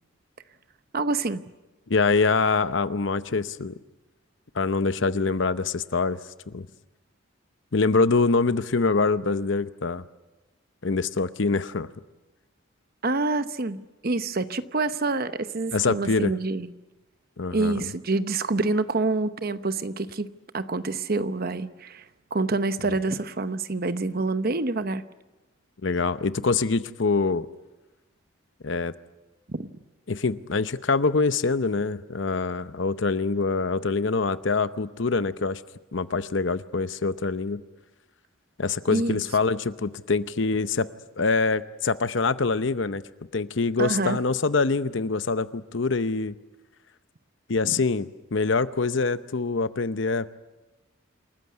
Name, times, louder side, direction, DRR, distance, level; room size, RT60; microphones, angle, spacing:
voice 1, 0.9-1.4 13.0-16.7 17.5-20.3 20.5-22.0 22.3-25.0 29.5-29.7 38.9-39.2 43.8-44.2, right 3 dB, 45° right, 11 dB, 0.9 m, -27 dB
voice 2, 1.9-3.7 4.5-6.2 6.5-6.7 7.7-10.0 10.8-11.9 15.7-16.3 17.4-17.9 25.8-27.5 28.6-28.9 30.1-35.6 35.9-37.6 38.6-40.9 41.2-43.0 43.3-46.3 47.5-50.3, left 4 dB, 60° left, 13 dB, 0.8 m, -25 dB
27.5 x 14.5 x 9.5 m, 1.1 s
head